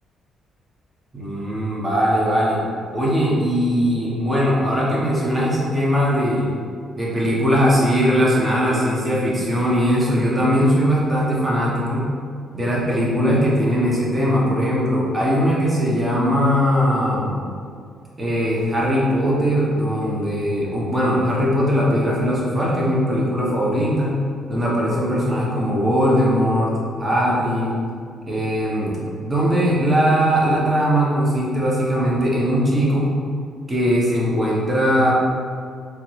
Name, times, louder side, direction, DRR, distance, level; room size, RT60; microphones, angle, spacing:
voice 1, 1.1-2.6 2.9-6.5 6.9-12.1 12.5-17.4 18.2-24.2 24.5-26.7 27.0-27.8 28.3-28.9 29.2-33.1 33.7-35.1, equal, 20° right, -5 dB, 0.9 m, -20 dB
3.6 x 2.2 x 3.1 m, 2.2 s
cardioid pair, 90°, 0 cm